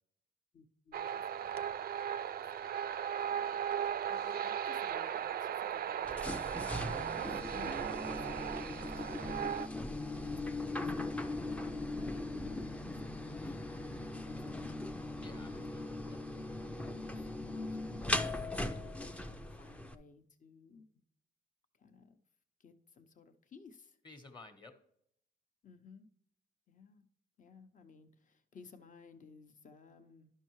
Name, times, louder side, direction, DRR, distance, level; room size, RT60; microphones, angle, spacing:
voice 1, 0.5-1.8 2.1-2.7 3.2-3.6 4.1-14.7 15.3-15.6 17.4-20.9 21.8-22.2 22.6-24.0 25.6-26.1 26.7-27.1 27.4-30.3, left 4 dB, 45° left, 8 dB, 0.8 m, -58 dB
sound 1, 0.9-9.7, right 9 dB, 50° right, 0.4 m, -37 dB
sound 2, 6.0-19.9, left 2 dB, 5° left, 0.5 m, -39 dB
voice 2, 15.2-16.5 24.0-24.7, left 3 dB, 25° left, 7 dB, 1.1 m, -55 dB
11.5 x 5.5 x 3.1 m, 0.71 s
cardioid pair, 100°, 19 cm